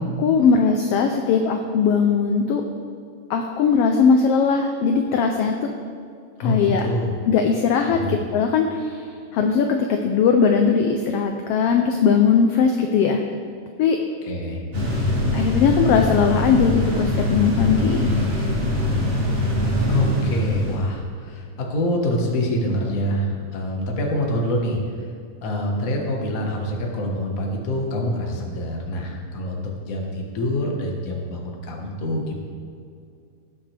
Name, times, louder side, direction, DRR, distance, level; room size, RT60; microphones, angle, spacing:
voice 1, 0.2-2.6 3.3-5.7 6.4-6.8 7.3-9.0 9.3-13.2 13.8-14.0 15.3-18.1, left 6 dB, 75° left, 4 dB, 1.4 m, -19 dB
voice 2, 6.4-7.1 7.9-8.2 14.2-14.6 19.8-24.8 25.4-32.4, left 1 dB, 40° left, 0 dB, 1.3 m, -25 dB
sound 1, 14.7-20.8, left 1 dB, 30° right, 2.2 m, -22 dB
18.5 x 7.5 x 3.4 m, 2.4 s
omnidirectional pair, 3.4 m